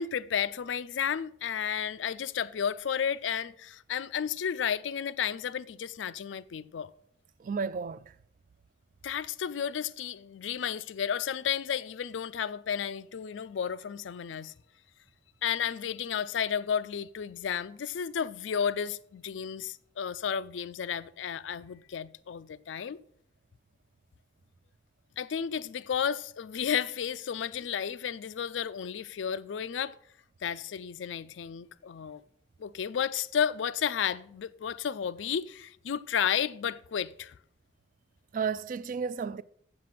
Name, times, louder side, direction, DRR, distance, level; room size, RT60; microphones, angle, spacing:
voice 1, 0.0-6.9 9.0-14.5 15.4-23.0 25.2-30.0 30.4-32.2 32.6-37.3, left 8 dB, 90° left, 0.4 m, -32 dB
voice 2, 7.4-8.1 38.3-39.4, right 5 dB, 45° right, 0.3 m, -32 dB
7.6 x 7.6 x 5.9 m
head